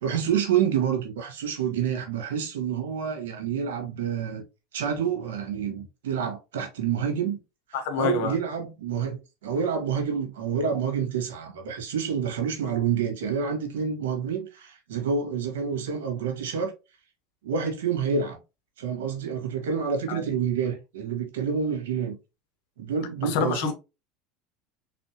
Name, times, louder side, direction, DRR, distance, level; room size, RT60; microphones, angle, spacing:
voice 1, 0.0-4.4 4.7-7.4 7.7-16.7 17.4-18.4 18.8-22.2 22.8-23.7, right 7 dB, 85° right, 1.6 m, -28 dB
voice 2, 7.7-8.4 20.1-20.2 23.2-23.7, left 6 dB, 70° left, 1.1 m, -27 dB
3.8 x 3.4 x 2.9 m
supercardioid pair, 100°, 0 cm